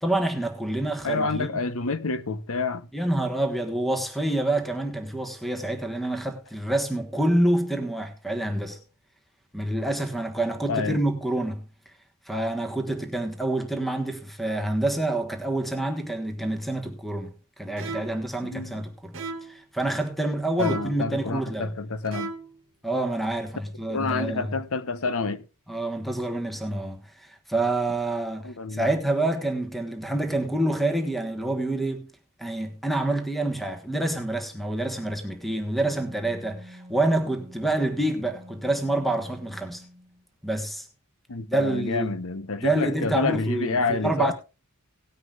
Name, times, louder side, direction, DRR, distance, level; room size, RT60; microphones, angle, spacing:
voice 1, 0.0-1.6 2.9-8.8 9.5-11.6 12.3-21.7 22.8-24.6 25.7-32.1 32.4-39.8 40.4-40.9 41.5-42.1 42.6-44.3, right 1 dB, ahead, 1.3 m, -27 dB
voice 2, 1.0-2.9 10.7-11.0 18.4-18.8 20.6-22.3 23.9-25.4 28.4-28.9 41.3-44.3, left 4 dB, 70° left, 0.9 m, -28 dB
sound 1, 17.8-18.3 19.1-19.6 20.6-21.1 22.0-22.6, right 4 dB, 60° right, 1.3 m, -36 dB
Wind instrument woodwind instrument, 35.8-40.3, equal, 30° right, 1.1 m, -47 dB
18.5 x 9.7 x 2.5 m
head